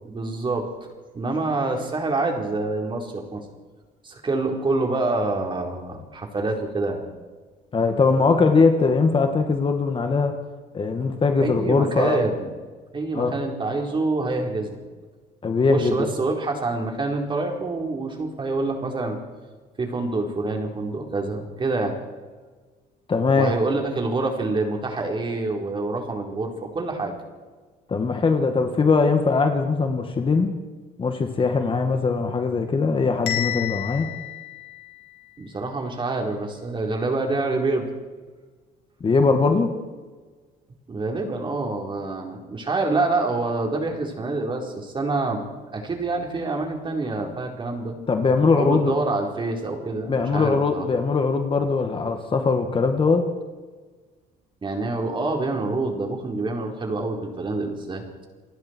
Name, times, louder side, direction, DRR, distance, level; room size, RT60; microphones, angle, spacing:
voice 1, 0.0-0.7 1.1-3.4 4.0-7.1 11.4-12.5 12.9-14.8 15.7-19.2 19.8-22.0 23.3-27.1 35.4-37.8 40.9-45.4 45.7-48.0 48.6-50.9 54.6-58.3, right 3 dB, 30° right, 2 dB, 4.5 m, -26 dB
voice 2, 7.7-10.4 10.7-12.2 13.1-13.4 15.4-16.1 23.1-23.6 27.9-30.5 31.0-34.1 39.0-39.7 48.1-48.9 50.1-53.3, left 4 dB, 30° left, 6 dB, 2.1 m, -21 dB
Bell, 33.3-35.3, left 12 dB, 75° left, 3.8 m, -31 dB
29.0 x 19.0 x 4.7 m, 1.4 s
cardioid pair, 110°, 17 cm